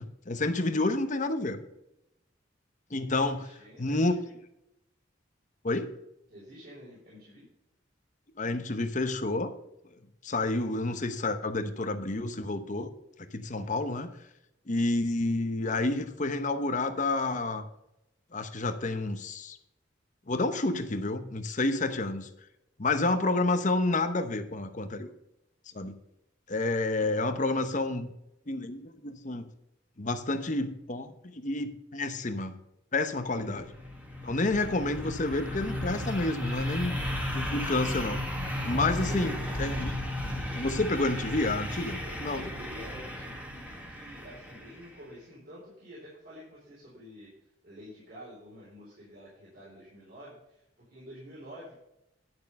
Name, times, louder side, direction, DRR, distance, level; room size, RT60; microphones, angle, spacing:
voice 1, 0.0-1.6 2.9-3.4 3.8-4.2 5.6-5.9 8.4-9.5 10.2-12.9 13.3-14.1 14.7-17.6 18.3-19.6 20.3-22.3 22.8-25.1 25.7-26.0 26.5-28.1 28.5-29.5 30.0-32.6 32.9-33.7 34.2-36.9 37.3-38.2 38.6-39.9 40.5-42.4, left 2 dB, 40° left, 9 dB, 0.9 m, -29 dB
voice 2, 3.1-4.4 6.3-7.4 38.7-39.8 42.0-47.3 47.6-50.6 50.9-51.7, equal, 55° right, -7 dB, 4.1 m, -48 dB
sound 1, 33.2-44.9, left 1 dB, 10° right, 1.8 m, -35 dB
10.5 x 6.6 x 5.3 m, 0.85 s
head